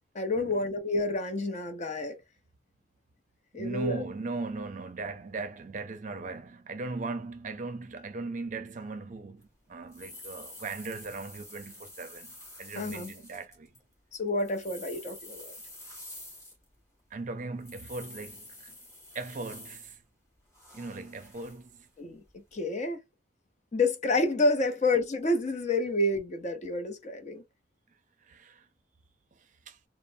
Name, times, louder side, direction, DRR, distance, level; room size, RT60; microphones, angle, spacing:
voice 1, 0.1-2.2 3.5-4.0 12.7-13.1 14.1-15.5 22.0-22.2 22.5-23.0 23.7-27.4, left 2 dB, 40° left, 0.6 m, -29 dB
voice 2, 3.6-13.7 17.1-18.7 19.1-20.0 20.7-21.9 28.3-28.7 29.7-29.8, right 3 dB, 40° right, 0.5 m, -38 dB
sound 1, 9.4-9.5 9.9-13.8 14.3-16.8 17.6-19.9 20.5-21.7 22.3-22.4, left 1 dB, 15° left, 1.3 m, -48 dB
3.1 x 2.0 x 2.5 m
head